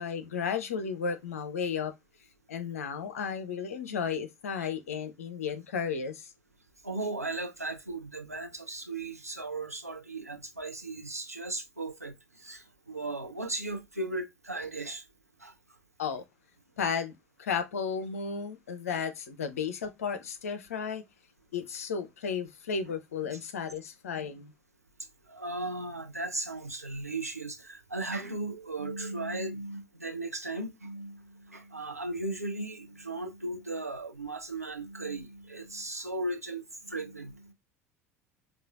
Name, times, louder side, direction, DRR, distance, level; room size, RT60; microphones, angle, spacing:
voice 1, 0.0-1.9 2.5-6.3 16.0-16.2 16.8-17.1 17.4-21.0 21.5-24.5, left 6 dB, 70° left, 0.6 m, -33 dB
voice 2, 6.8-15.0 15.4-15.5 23.3-23.4 25.3-37.5, right 2 dB, 90° right, 0.5 m, -37 dB
4.9 x 2.4 x 2.3 m
figure-of-eight pair, 70°, 8 cm